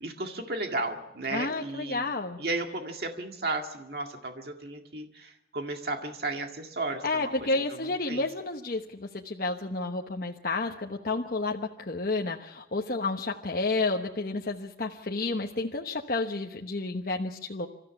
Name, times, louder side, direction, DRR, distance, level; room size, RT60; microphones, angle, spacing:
voice 1, 0.0-2.0 2.4-7.3 8.1-8.2, right 2 dB, 60° right, 3 dB, 2.0 m, -34 dB
voice 2, 1.3-2.4 7.0-17.7, left 3 dB, 55° left, 2 dB, 1.1 m, -31 dB
27.5 x 14.0 x 7.1 m, 0.93 s
head